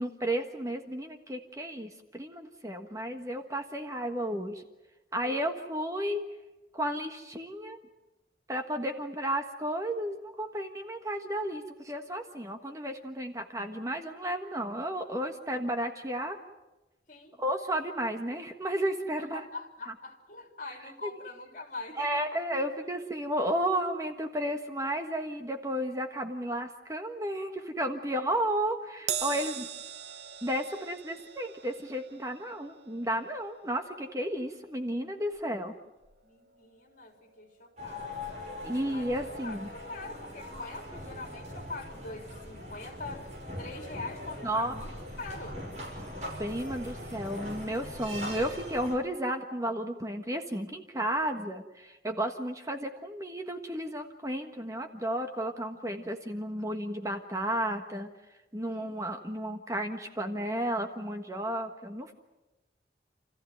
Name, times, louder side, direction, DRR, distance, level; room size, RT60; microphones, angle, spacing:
voice 1, 0.0-4.6 5.1-6.2 6.7-7.8 8.5-16.4 17.4-19.4 21.0-21.1 22.0-29.7 30.4-35.7 38.6-39.7 44.4-44.7 46.4-58.1 58.5-62.1, right 1 dB, 20° right, 5 dB, 1.4 m, -33 dB
voice 2, 5.2-5.5 17.1-17.4 19.2-22.2 36.2-38.5 38.9-44.9 45.2-45.6 58.6-59.0, left 3 dB, 45° left, 3 dB, 3.7 m, -43 dB
Crash cymbal, 29.1-35.7 36.0-36.3 37.3-37.4, right 9 dB, 75° right, 1.0 m, -41 dB
sound 1, 37.8-49.0, left 1 dB, 40° right, 6.2 m, -41 dB
29.0 x 14.5 x 9.3 m, 1.1 s
head